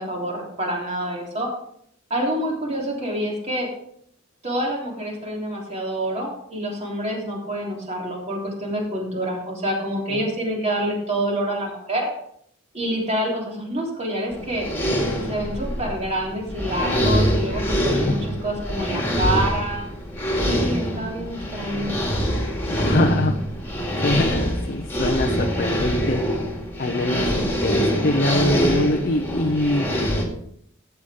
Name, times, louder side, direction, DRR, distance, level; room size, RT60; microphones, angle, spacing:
voice 1, 0.0-1.5 2.1-3.7 4.4-12.1 12.7-14.7 15.1-19.8 20.4-21.9, right 1 dB, 30° right, -2 dB, 3.5 m, -27 dB
sound 1, 14.3-30.2, equal, 10° left, 2.3 m, -24 dB
voice 2, 22.7-23.3 24.0-26.2 26.8-29.9, left 1 dB, 45° left, 3 dB, 0.7 m, -24 dB
13.5 x 8.1 x 3.7 m, 0.68 s
head